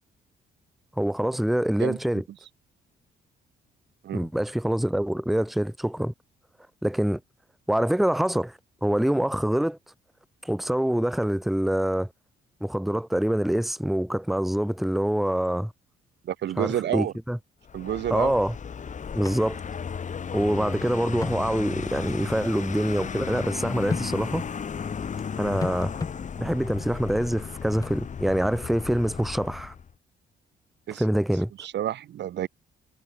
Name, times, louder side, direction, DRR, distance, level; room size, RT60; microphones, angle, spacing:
voice 1, 1.0-2.2 4.1-6.1 6.8-7.2 7.7-8.5 8.8-9.8 10.4-12.1 12.6-15.7 16.6-17.4 18.1-18.5 19.1-19.6 20.3-24.4 25.4-25.9 26.4-29.7 31.0-31.5, right 1 dB, ahead, 0.8 m, -25 dB
voice 2, 16.2-17.1 17.7-18.3 30.9-31.0 31.6-32.5, right 11 dB, 60° right, 0.7 m, -29 dB
Vehicle, 17.6-29.9, left 6 dB, 40° left, 1.2 m, -35 dB
sound 1, 19.2-19.4 19.7-19.8 21.2-21.4 23.9-24.1 25.6-26.2 27.8-28.0, left 4 dB, 15° left, 0.4 m, -32 dB
cardioid pair, 90°, 20 cm